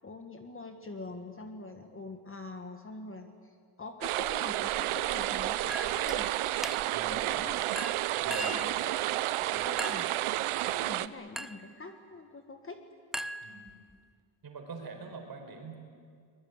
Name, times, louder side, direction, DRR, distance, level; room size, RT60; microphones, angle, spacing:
voice 1, 0.0-6.3 6.9-7.6 8.3-8.9 9.5-10.1 10.6-12.8, left 3 dB, 25° left, 6 dB, 1.6 m, -44 dB
sound 1, 4.0-11.1, right 15 dB, 85° right, 0.8 m, -31 dB
Chink clink, 5.7-6.2 6.6-7.1 7.8-8.7 9.8-10.2 11.4-11.7 13.1-13.9, equal, ahead, 0.5 m, -39 dB
voice 2, 6.9-7.3 8.2-8.6 13.4-13.8 14.4-15.8, right 4 dB, 45° right, 3 dB, 4.9 m, -43 dB
23.0 x 21.0 x 9.6 m, 2.2 s
cardioid pair, 125°, 49 cm